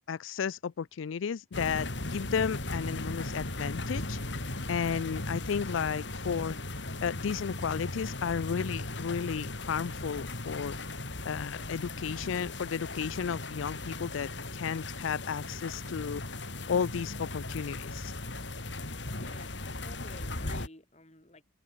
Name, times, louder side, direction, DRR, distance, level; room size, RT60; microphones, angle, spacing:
voice 1, 0.1-6.5 7.0-10.8 11.2-16.2 16.7-18.1, left 6 dB, 85° left, 0.4 m, -33 dB
sound 1, 1.5-20.7, left 2 dB, 65° left, 3.4 m, -37 dB
voice 2, 19.1-21.4, left 2 dB, 35° left, 4.9 m, -52 dB
open air
head